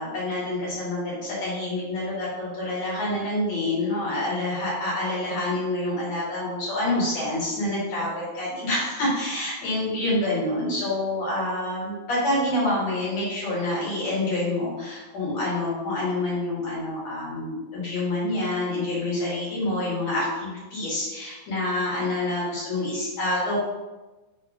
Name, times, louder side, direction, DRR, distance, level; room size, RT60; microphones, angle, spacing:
voice 1, 0.0-23.6, left 1 dB, 55° left, -7 dB, 3.5 m, -27 dB
6.2 x 3.6 x 5.2 m, 1.1 s
omnidirectional pair, 3.7 m